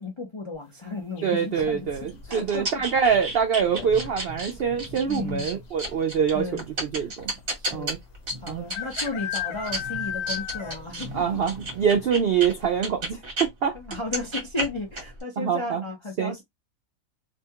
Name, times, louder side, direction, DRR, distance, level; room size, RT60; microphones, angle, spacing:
voice 1, 0.0-2.8 3.8-4.1 5.1-5.5 6.3-6.6 7.6-7.9 8.4-11.4 13.7-16.4, left 3 dB, 40° left, 0.4 m, -34 dB
sound 1, 1.2-1.6 3.5-3.8 4.1-4.2 4.4-5.0 5.7-5.8 6.0-6.1 7.7-7.8 8.7-11.0 11.4-11.5 11.9-12.0 12.5-12.6, left 10 dB, 90° left, 1.1 m, -34 dB
voice 2, 1.2-7.3 7.7-8.0 8.5-8.6 11.1-13.2 13.6-13.8 15.4-15.8 16.2-16.4, right 7 dB, 75° right, 0.5 m, -25 dB
sound 2, 1.6-13.5 13.8-15.2, right 1 dB, 40° right, 1.3 m, -34 dB
2.7 x 2.2 x 2.8 m
omnidirectional pair, 1.5 m